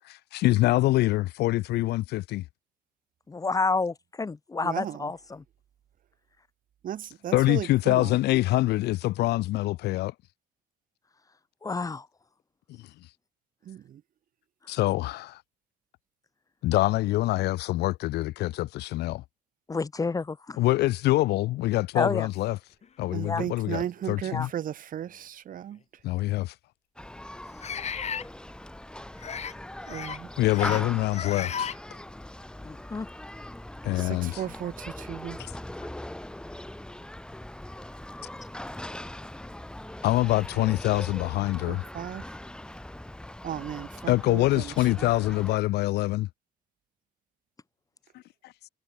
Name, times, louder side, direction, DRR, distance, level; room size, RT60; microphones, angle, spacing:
voice 1, 0.1-2.4 7.3-10.1 14.7-15.4 16.6-19.2 20.6-22.6 23.0-23.8 24.1-24.5 26.0-26.5 30.4-31.7 33.8-34.4 40.0-41.8 44.1-46.3, left 17 dB, 80° left, 1.4 m, -25 dB
voice 2, 3.3-5.4 11.6-12.1 19.7-20.6 21.9-22.3 23.2-23.4 24.3-24.5 32.6-33.1, left 4 dB, 20° left, 1.2 m, -29 dB
voice 3, 4.6-5.1 6.8-8.1 13.6-14.0 23.1-25.8 29.9-30.3 33.9-35.4 41.7-42.3 43.4-45.1, right 10 dB, 55° right, 2.4 m, -36 dB
sound 1, 22.8-22.9 23.7-23.8 25.4-25.5 27.6-28.3 29.2-29.5 29.9-30.2 30.4-30.8 31.1-31.8, left 7 dB, 40° left, 4.6 m, -34 dB
Human group actions, 27.0-45.6, left 1 dB, 5° left, 1.4 m, -40 dB
cardioid pair, 110°, 17 cm